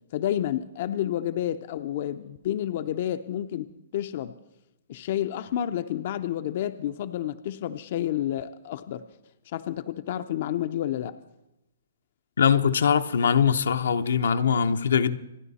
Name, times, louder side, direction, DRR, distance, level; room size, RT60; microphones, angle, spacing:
voice 1, 0.1-4.4 4.9-9.1 9.5-11.1, left 11 dB, 50° left, 0.5 m, -30 dB
voice 2, 12.4-15.2, left 7 dB, 80° left, 0.8 m, -22 dB
26.5 x 10.0 x 4.1 m
hypercardioid pair, 150°, 0 cm